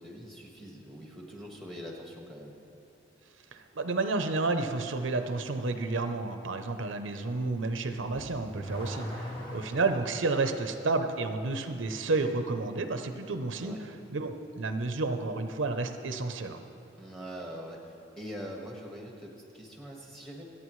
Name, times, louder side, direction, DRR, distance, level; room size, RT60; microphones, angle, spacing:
voice 1, 0.0-2.5 13.6-13.8 17.0-20.4, equal, ahead, -1 dB, 1.6 m, -43 dB
voice 2, 3.5-16.6, right 3 dB, 75° right, 7 dB, 0.7 m, -31 dB
Car / Accelerating revving vroom, 8.5-10.2, equal, 25° left, 1.8 m, -39 dB
26.5 x 8.8 x 3.2 m, 2.7 s
head